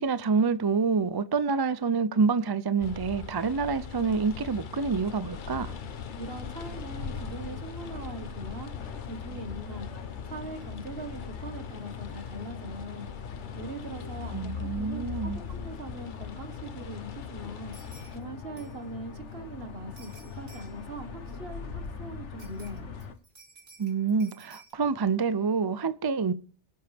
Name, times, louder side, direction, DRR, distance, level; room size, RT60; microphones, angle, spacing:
voice 1, 0.0-5.7 14.3-15.4 23.8-26.3, right 5 dB, 40° right, 0.3 m, -27 dB
sound 1, 2.8-18.2, left 7 dB, 50° left, 0.8 m, -41 dB
sound 2, 5.3-23.1, left 6 dB, 75° left, 1.5 m, -42 dB
voice 2, 6.2-8.7 9.0-9.9 10.3-13.0 13.5-17.8 18.1-22.9, right 2 dB, 55° right, 1.8 m, -41 dB
sound 3, 15.5-15.6 15.9-16.0 17.7-18.2 18.6-18.9 20.0-20.9 22.4-24.7, right 3 dB, 85° right, 2.6 m, -55 dB
23.0 x 7.8 x 3.5 m
omnidirectional pair, 1.2 m